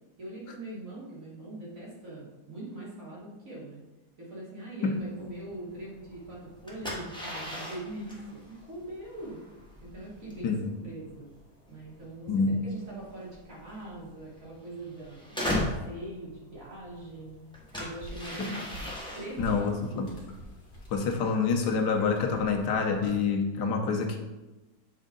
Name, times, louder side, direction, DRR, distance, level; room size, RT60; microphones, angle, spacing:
voice 1, 0.2-3.8 4.2-9.4 9.8-10.6 10.8-11.3 11.7-17.4 17.8-20.2, right 1 dB, 50° right, -6 dB, 2.4 m, -42 dB
sound 1, 4.9-23.3, left 1 dB, 5° left, 1.1 m, -40 dB
voice 2, 12.3-12.6 18.4-18.6 19.4-20.1 20.9-24.2, left 5 dB, 85° left, 3 dB, 1.4 m, -27 dB
sound 2, 16.5-23.2, equal, 50° left, 2.1 m, -48 dB
7.3 x 4.4 x 3.9 m, 1.1 s
omnidirectional pair, 1.8 m